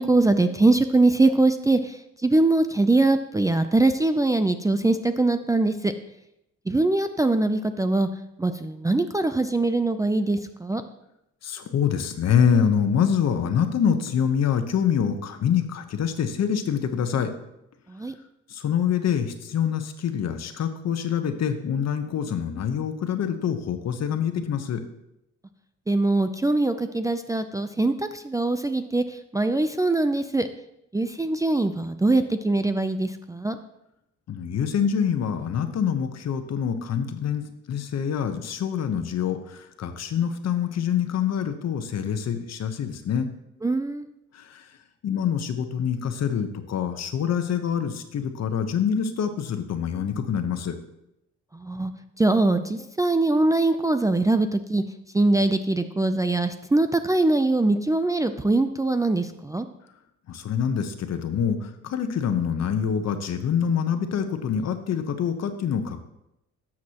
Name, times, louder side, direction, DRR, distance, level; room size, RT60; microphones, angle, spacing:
voice 1, 0.0-5.9 6.7-8.1 8.4-10.8 17.9-18.1 25.9-30.5 30.9-33.6 43.6-44.1 51.5-51.9 52.2-54.8 55.1-59.7, right 2 dB, 10° right, 9 dB, 0.4 m, -22 dB
voice 2, 11.4-17.3 18.5-24.8 34.3-43.3 44.3-44.6 45.0-50.8 60.3-66.0, left 8 dB, 60° left, 8 dB, 1.0 m, -25 dB
12.5 x 7.4 x 2.9 m, 0.83 s
cardioid pair, 90°, 30 cm